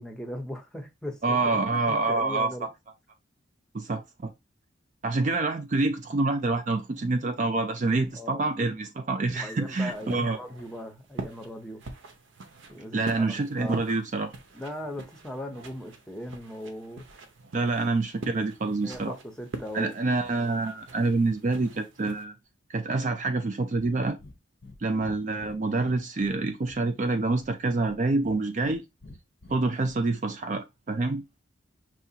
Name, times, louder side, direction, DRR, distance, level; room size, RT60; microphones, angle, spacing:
voice 1, 0.0-1.6 1.9-2.7 8.1-8.4 9.3-11.8 12.7-13.9 14.5-17.0 18.8-20.0, equal, 5° left, 0.6 m, -39 dB
voice 2, 1.2-2.7 3.7-4.3 5.0-10.4 12.9-14.3 17.5-19.2 19.7-22.3 22.7-24.2 24.8-28.8 29.5-31.2, right 3 dB, 40° right, 0.4 m, -27 dB
sound 1, 9.5-22.2, right 3 dB, 75° right, 0.7 m, -44 dB
Breathing, 23.8-23.9 24.2-24.4 24.6-24.8 25.0-26.4 26.6-27.6 27.8-28.8 29.0-29.9, left 2 dB, 55° left, 0.6 m, -48 dB
5.7 x 2.4 x 2.8 m
head